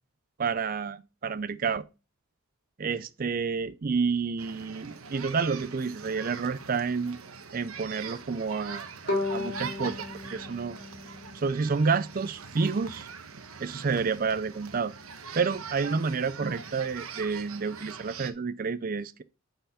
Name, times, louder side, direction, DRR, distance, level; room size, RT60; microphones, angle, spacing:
voice 1, 0.4-1.8 2.8-7.2 7.5-10.8 11.3-13.1 13.6-14.9 15.3-19.2, right 5 dB, 40° right, 0.4 m, -29 dB
sound 1, 4.4-18.3, right 5 dB, 85° right, 1.1 m, -42 dB
Bowed string instrument, 9.1-12.1, left 2 dB, 50° left, 3.2 m, -35 dB
6.9 x 5.7 x 5.6 m
head